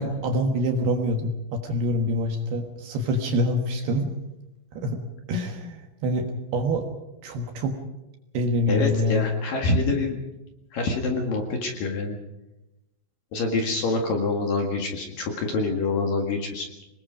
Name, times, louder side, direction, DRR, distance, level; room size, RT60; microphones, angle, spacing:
voice 1, 0.0-4.1 4.7-5.0 5.3-6.9 7.2-7.8 8.3-9.3, equal, 65° right, 4 dB, 3.0 m, -26 dB
voice 2, 8.7-10.2 10.7-12.2 13.3-16.7, left 3 dB, 55° left, 2 dB, 2.9 m, -26 dB
26.5 x 20.5 x 5.1 m, 0.97 s
omnidirectional pair, 5.9 m